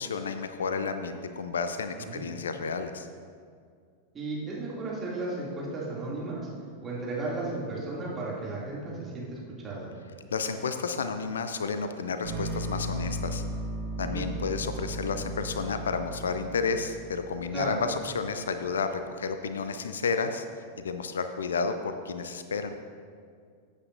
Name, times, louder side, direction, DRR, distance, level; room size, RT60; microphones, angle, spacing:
voice 1, 0.0-3.1 10.3-13.4 14.0-20.5 20.8-22.8, left 5 dB, 65° left, 9 dB, 0.4 m, -31 dB
voice 2, 4.1-6.5 6.8-9.4 9.6-9.9 14.0-14.3 17.5-17.8, right 2 dB, 20° right, -6 dB, 2.7 m, -34 dB
sound 1, 12.2-18.3, right 1 dB, 65° right, 1.9 m, -36 dB
14.5 x 8.3 x 2.7 m, 2.2 s
figure-of-eight pair, 90°, 0 cm